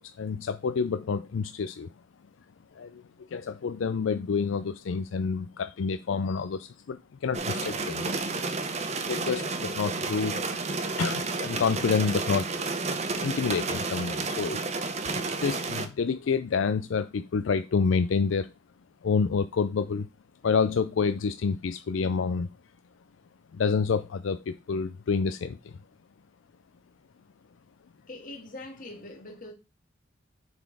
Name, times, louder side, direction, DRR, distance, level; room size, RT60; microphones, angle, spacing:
voice 1, 0.0-1.9 2.8-3.0 3.3-8.1 9.1-10.5 11.0-12.5 13.2-14.6 15.1-18.5 19.0-20.1 20.4-22.5 23.5-25.8, left 5 dB, 75° left, 0.4 m, -28 dB
sound 1, 7.3-15.9, right 3 dB, 35° right, 0.7 m, -31 dB
voice 2, 28.1-29.5, left 2 dB, 45° left, 1.6 m, -42 dB
7.1 x 4.1 x 4.8 m
head